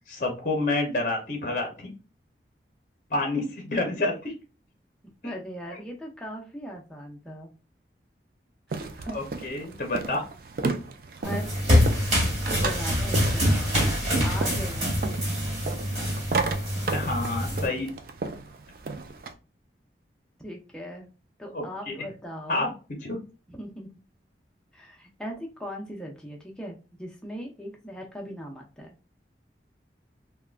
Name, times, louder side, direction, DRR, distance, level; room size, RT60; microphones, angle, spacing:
voice 1, 0.1-1.9 3.1-4.3 9.1-10.2 16.9-18.0 21.5-22.0 22.5-22.7 23.0-23.2, left 2 dB, 45° left, 2 dB, 0.7 m, -28 dB
voice 2, 5.0-7.5 8.7-9.2 11.2-12.0 12.5-15.0 20.4-21.1 21.4-22.7 23.5-23.9 24.7-28.9, equal, 5° left, -1 dB, 0.6 m, -39 dB
sound 1, 8.7-19.3, right 3 dB, 50° right, 0.4 m, -34 dB
sound 2, 11.2-17.7, equal, 35° right, 1.5 m, -25 dB
3.5 x 2.2 x 2.4 m, 0.33 s
head